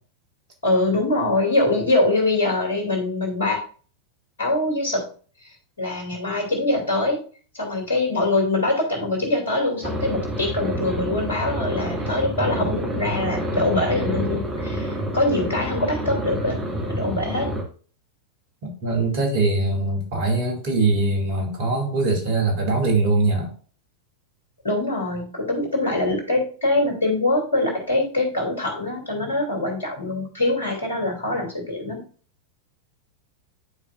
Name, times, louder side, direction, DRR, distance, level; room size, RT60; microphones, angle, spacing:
voice 1, 0.6-3.6 4.4-5.1 5.4-5.5 5.8-7.2 7.5-17.5 24.6-32.0, left 2 dB, 70° left, 2 dB, 2.6 m, -23 dB
sound 1, 9.8-17.6, equal, 15° right, 2.0 m, -28 dB
voice 2, 18.8-23.5, right 3 dB, 50° right, 1 dB, 2.3 m, -22 dB
11.0 x 4.7 x 2.5 m, 0.41 s
figure-of-eight pair, 90°, 0 cm